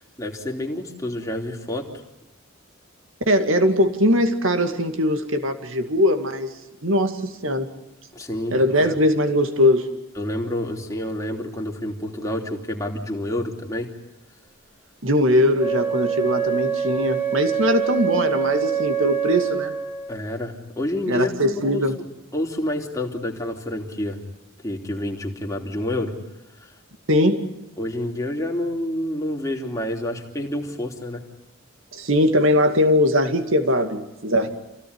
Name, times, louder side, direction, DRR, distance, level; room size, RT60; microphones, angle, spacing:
voice 1, 0.0-1.9 8.1-8.6 8.8-9.0 10.2-13.9 20.1-21.8 22.3-24.2 24.6-26.1 26.6-26.7 27.8-31.2, left 1 dB, 15° left, 1 dB, 3.1 m, -28 dB
voice 2, 3.3-6.5 6.8-7.7 8.5-9.9 15.0-19.7 21.1-22.0 27.1-27.4 31.9-34.5, left 1 dB, 65° right, 7 dB, 2.3 m, -20 dB
Wind instrument woodwind instrument, 15.6-20.2, right 8 dB, 10° right, 2.1 m, -25 dB
27.5 x 17.0 x 9.7 m, 0.93 s
head